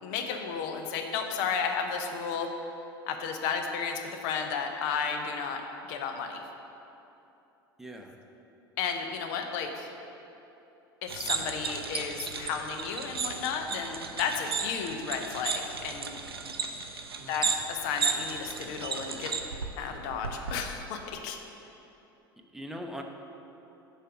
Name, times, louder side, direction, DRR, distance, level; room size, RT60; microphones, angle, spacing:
voice 1, 0.0-2.5 3.1-5.6 5.9-6.4 8.8-9.9 11.0-16.2 17.3-19.3 19.8-21.4, left 6 dB, 55° left, 5 dB, 0.7 m, -33 dB
voice 2, 7.8-8.2 17.2-17.5 22.5-23.0, equal, 5° right, 2 dB, 0.8 m, -41 dB
sound 1, 11.1-20.7, right 5 dB, 85° right, 0.5 m, -34 dB
6.6 x 5.0 x 6.1 m, 2.9 s
figure-of-eight pair, 75°, 12 cm